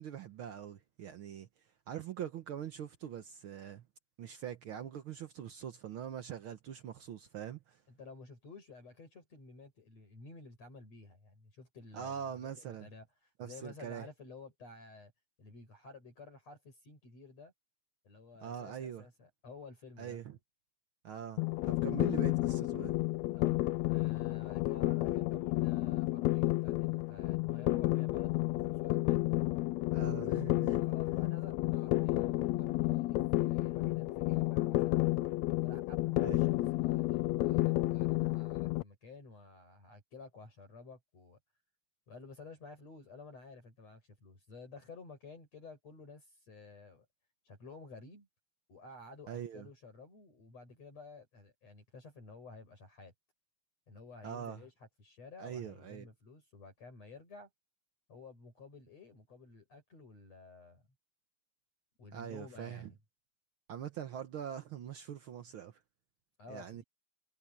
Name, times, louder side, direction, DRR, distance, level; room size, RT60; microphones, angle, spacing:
voice 1, 0.0-1.5 1.9-3.8 4.2-7.8 11.9-12.9 13.4-14.1 18.4-19.1 20.0-20.4 21.0-22.9 29.9-30.8 36.2-36.4 49.3-49.7 54.2-54.6 55.4-56.1 62.1-62.9 63.7-65.8 66.5-66.8, right 9 dB, 80° right, 1.1 m, -43 dB
voice 2, 7.9-15.1 15.4-17.5 18.0-20.2 23.3-29.2 30.6-35.1 35.6-41.4 42.1-47.1 47.4-48.3 48.7-53.1 53.9-57.5 58.1-60.8 62.0-63.0 66.4-66.8, left 3 dB, 50° left, 7.9 m, -53 dB
sound 1, 21.4-38.8, left 19 dB, 85° left, 1.6 m, -31 dB
omnidirectional pair, 3.8 m